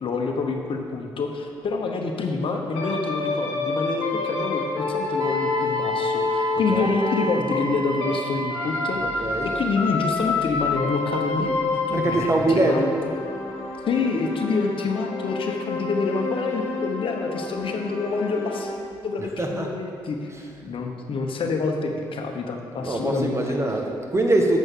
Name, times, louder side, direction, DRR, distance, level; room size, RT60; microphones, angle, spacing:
voice 1, 0.0-11.6 11.9-13.1 13.9-18.7 19.0-20.3 20.6-23.4, left 4 dB, 55° left, 3 dB, 1.0 m, -27 dB
sound 1, 2.7-8.2 8.5-18.8, left 3 dB, 75° left, 1.3 m, -28 dB
Wind instrument woodwind instrument, 5.2-9.3, right 3 dB, 45° right, 0.7 m, -31 dB
voice 2, 9.0-9.5 11.9-13.0 19.4-19.7 20.3-20.5 22.8-24.6, right 1 dB, 25° right, 2 dB, 1.4 m, -23 dB
8.3 x 8.0 x 3.7 m, 2.4 s
hypercardioid pair, 50°, 11 cm